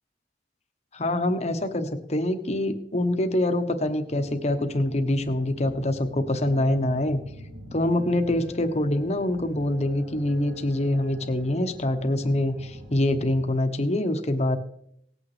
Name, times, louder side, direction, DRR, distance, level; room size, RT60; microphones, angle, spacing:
voice 1, 0.9-7.2 7.7-14.6, left 1 dB, 40° left, 7 dB, 1.1 m, -25 dB
sound 1, 4.1-13.4, left 1 dB, 65° right, 3.0 m, -44 dB
18.5 x 8.8 x 3.3 m, 0.74 s
head